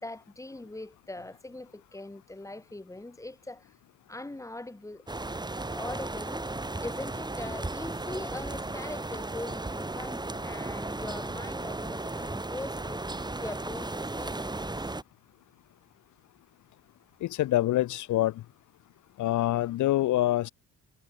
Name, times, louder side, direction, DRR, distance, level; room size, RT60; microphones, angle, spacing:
voice 1, 0.0-3.7 4.1-5.0 5.7-6.4 6.8-13.1 13.4-14.8, left 2 dB, 10° left, 2.8 m, -41 dB
sound 1, 5.1-15.0, right 2 dB, 15° right, 2.9 m, -35 dB
voice 2, 17.2-18.4 19.2-20.5, left 15 dB, 75° left, 0.9 m, -26 dB
cardioid pair, 90°, 30 cm